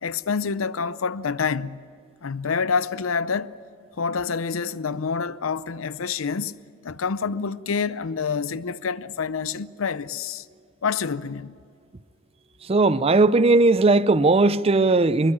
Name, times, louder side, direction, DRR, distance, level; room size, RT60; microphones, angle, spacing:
voice 1, 0.0-1.9 2.2-3.5 4.0-6.5 6.8-10.5 10.8-11.6, left 5 dB, 85° left, 0.6 m, -27 dB
voice 2, 12.7-15.3, right 3 dB, 30° right, 0.5 m, -18 dB
25.0 x 21.5 x 8.7 m
head